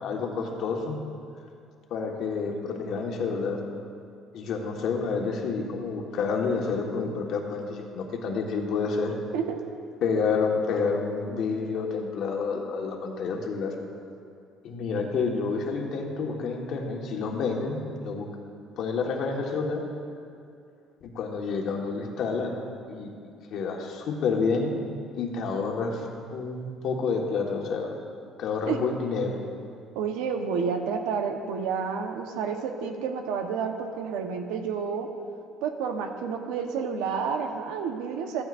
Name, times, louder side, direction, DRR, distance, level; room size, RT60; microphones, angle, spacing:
voice 1, 0.0-1.0 1.9-3.6 4.3-9.2 10.0-13.7 14.6-18.3 18.8-19.8 21.0-22.6 22.9-23.1 23.5-24.7 25.1-28.0 28.4-29.4, left 4 dB, 65° left, 1 dB, 1.6 m, -29 dB
voice 2, 29.9-35.1 35.6-38.4, right 6 dB, 90° right, 4 dB, 1.1 m, -30 dB
14.5 x 14.0 x 2.6 m, 2.4 s
cardioid pair, 100°, 0 cm